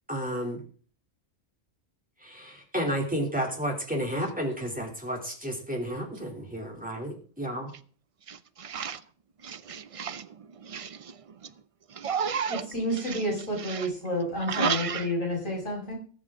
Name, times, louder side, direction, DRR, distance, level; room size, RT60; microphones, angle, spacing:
voice 1, 0.1-0.6 2.2-7.7, equal, 5° right, 2.9 m, -32 dB
voice 2, 8.3-9.0 9.4-10.3 10.7-10.9 12.0-12.6 14.5-15.0, right 6 dB, 45° right, 0.4 m, -31 dB
voice 3, 12.5-15.9, equal, 80° left, 5.9 m, -30 dB
19.0 x 7.7 x 3.7 m
omnidirectional pair, 1.3 m